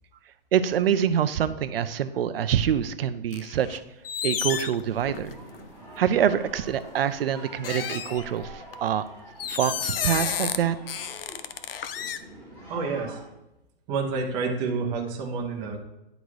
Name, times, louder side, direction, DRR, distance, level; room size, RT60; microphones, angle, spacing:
voice 1, 0.5-3.8 4.2-5.4 6.0-9.0 9.5-10.8, right 9 dB, 80° right, 11 dB, 0.6 m, -25 dB
sound 1, 3.3-3.8 4.0-5.6 6.4-6.6 7.6-8.7 9.4-10.6 10.9-12.2, left 8 dB, 75° left, 0.7 m, -31 dB
sound 2, 5.0-13.3, right 1 dB, 15° left, 2.0 m, -46 dB
voice 2, 12.7-13.2 13.9-15.8, right 4 dB, 15° right, 0 dB, 0.7 m, -29 dB
9.9 x 4.0 x 4.7 m, 0.93 s
hypercardioid pair, 170°, 29 cm